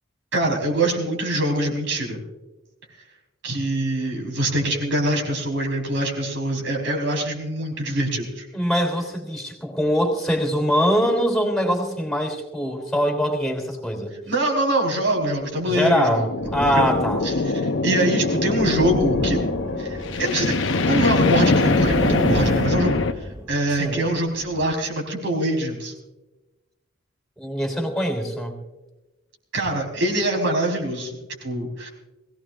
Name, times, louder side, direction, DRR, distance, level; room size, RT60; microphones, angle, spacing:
voice 1, 0.3-2.2 3.4-8.5 14.3-16.2 16.6-16.9 17.2-19.4 19.8-25.9 29.5-31.9, right 1 dB, 65° right, 1 dB, 4.3 m, -24 dB
voice 2, 8.5-14.1 15.6-17.2 23.8-24.1 27.4-28.6, equal, ahead, 3 dB, 3.4 m, -23 dB
sound 1, 15.4-23.1, left 3 dB, 65° left, 0.8 m, -23 dB
sound 2, 16.4-17.7 18.4-20.8 21.2-24.0 24.4-24.7, equal, 20° right, 1.1 m, -31 dB
21.5 x 17.0 x 2.5 m, 1.1 s
head